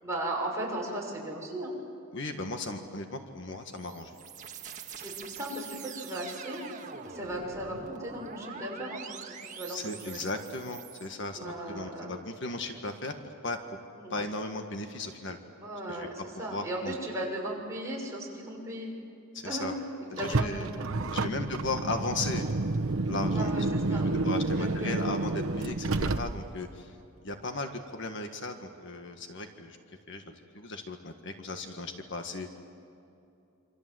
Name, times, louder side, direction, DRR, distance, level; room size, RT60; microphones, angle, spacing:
voice 1, 0.0-1.7 5.0-6.6 7.0-9.0 9.5-9.8 10.0-10.2 11.3-12.1 13.9-14.1 15.6-18.9 19.4-19.7 20.2-21.2 23.3-24.1 24.6-25.0, right 1 dB, 15° right, -3 dB, 6.6 m, -36 dB
voice 2, 2.1-4.2 9.7-13.6 14.1-15.4 15.9-16.1 16.3-17.0 19.3-19.7 20.1-20.7 21.1-22.4 23.1-23.5 23.9-26.9 27.2-29.8 30.1-32.5, left 2 dB, 60° left, 5 dB, 1.7 m, -36 dB
sound 1, 3.5-11.1, right 6 dB, 35° right, 1.7 m, -44 dB
Car, 20.2-26.7, right 2 dB, 80° right, 0.9 m, -30 dB
27.5 x 26.5 x 7.9 m, 2.8 s
head